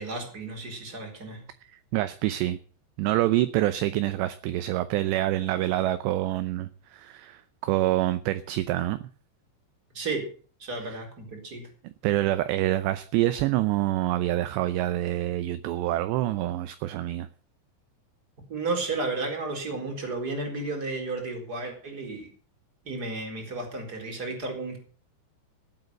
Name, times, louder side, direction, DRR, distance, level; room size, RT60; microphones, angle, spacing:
voice 1, 0.0-1.5 9.9-10.3 10.6-11.7 18.5-22.3 22.8-24.8, right 3 dB, 20° right, 4.0 m, -33 dB
voice 2, 1.9-2.6 3.0-9.0 10.8-11.0 11.8-17.3, right 15 dB, 80° right, 2.7 m, -26 dB
18.0 x 8.2 x 6.6 m
omnidirectional pair, 5.5 m